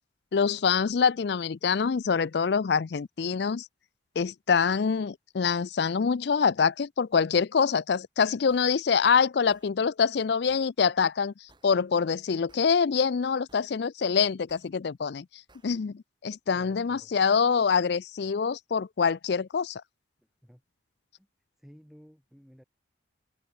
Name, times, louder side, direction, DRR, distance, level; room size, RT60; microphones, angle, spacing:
voice 1, 0.3-3.7 4.2-11.3 11.6-15.3 15.6-19.8, left 6 dB, 55° left, 0.4 m, -25 dB
sound 1, 8.5-8.7 9.5-9.7 10.5-10.7 11.5-11.7 12.5-12.7 13.5-13.7 14.5-14.7 15.5-15.7, right 2 dB, 25° right, 6.5 m, -60 dB
voice 2, 16.5-17.1 20.2-20.6 21.1-21.3 21.6-22.6, equal, ahead, 8.0 m, -54 dB
head